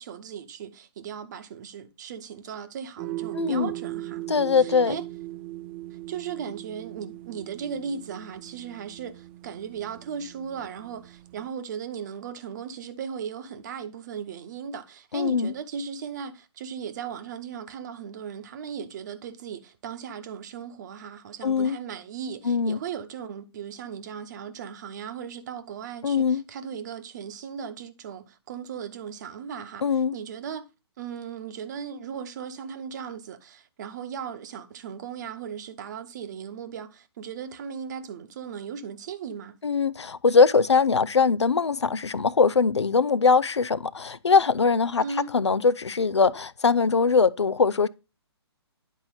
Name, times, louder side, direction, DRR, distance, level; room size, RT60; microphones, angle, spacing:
voice 1, 0.0-4.3 4.5-5.0 5.9-30.7 31.0-39.6 45.0-45.3, right 7 dB, 40° right, 1.0 m, -37 dB
sound 1, 3.0-11.5, right 16 dB, 25° right, 0.4 m, -39 dB
voice 2, 3.4-3.7 4.3-4.9 15.1-15.5 21.4-21.8 22.4-22.8 26.0-26.4 29.8-30.2 39.6-45.1 45.3-47.9, left 5 dB, 80° left, 0.5 m, -21 dB
10.5 x 4.5 x 3.9 m
figure-of-eight pair, 130°, 14 cm